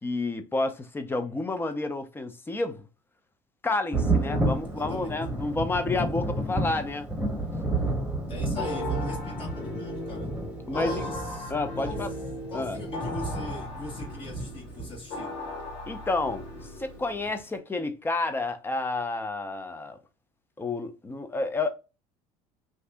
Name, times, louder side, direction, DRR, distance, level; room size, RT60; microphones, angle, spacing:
voice 1, 0.0-2.9 3.6-7.1 10.7-11.1 11.5-12.1 12.5-12.8 15.9-20.0 20.6-21.7, left 3 dB, 15° left, 0.6 m, -30 dB
Thunder, 3.9-15.3 16.6-16.7 17.3-17.4, right 2 dB, 5° right, 1.0 m, -31 dB
voice 2, 4.7-5.2 8.3-10.3 10.7-12.0 12.5-15.3, left 1 dB, 40° left, 1.2 m, -40 dB
sound 1, 8.6-17.3, left 2 dB, 90° left, 1.4 m, -37 dB
2.6 x 2.5 x 3.4 m
supercardioid pair, 100°, 14 cm